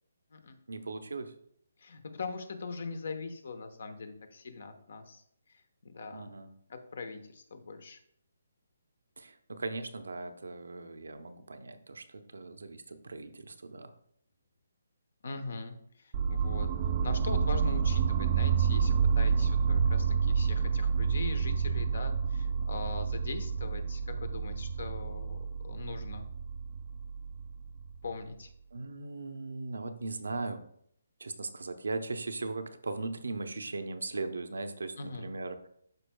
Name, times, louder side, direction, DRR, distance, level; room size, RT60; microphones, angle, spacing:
voice 1, 0.7-1.3 6.1-6.5 9.2-13.9 28.7-30.6 31.2-35.6, right 3 dB, 80° right, 7 dB, 0.8 m, -38 dB
voice 2, 1.8-5.2 5.5-6.3 6.7-8.0 15.2-16.7 17.0-26.3 28.0-28.5 35.0-35.3, left 4 dB, 65° left, 8 dB, 1.0 m, -41 dB
sound 1, 16.1-28.1, right 6 dB, 35° right, 0.4 m, -29 dB
12.0 x 4.5 x 2.3 m, 0.69 s
hypercardioid pair, 150°, 0 cm